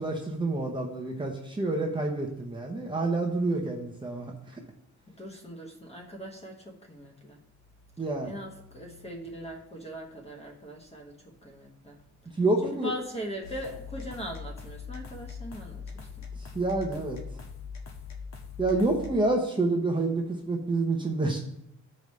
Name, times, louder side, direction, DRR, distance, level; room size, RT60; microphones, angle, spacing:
voice 1, 0.0-4.6 8.0-8.3 12.4-12.9 16.4-17.2 18.6-21.4, right 2 dB, 15° right, -1 dB, 0.8 m, -28 dB
voice 2, 5.1-7.4 8.2-12.0 12.6-16.3, equal, 20° left, 0 dB, 1.1 m, -40 dB
sound 1, 13.4-19.1, left 5 dB, 60° left, 1.4 m, -41 dB
14.0 x 5.2 x 3.2 m, 0.78 s
wide cardioid pair, 150°, 32 cm